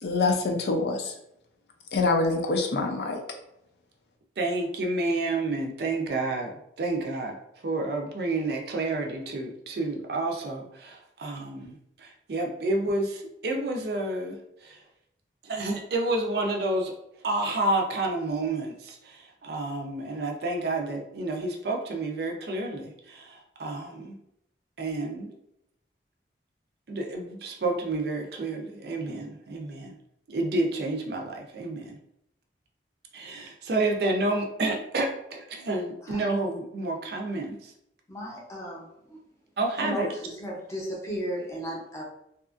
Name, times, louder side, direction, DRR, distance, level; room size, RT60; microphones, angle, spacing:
voice 1, 0.0-1.1 1.9-3.2, left 3 dB, 70° left, 3 dB, 0.5 m, -25 dB
voice 2, 4.4-7.4 7.6-14.8 15.4-16.9 17.2-24.2 24.8-25.3 26.9-30.0 30.3-32.0 33.1-37.7 39.6-40.1, right 2 dB, 65° right, 2 dB, 0.4 m, -30 dB
voice 3, 38.1-39.2 39.8-40.1 40.4-42.0, equal, 15° left, -3 dB, 0.6 m, -34 dB
2.7 x 2.4 x 2.4 m, 0.78 s
head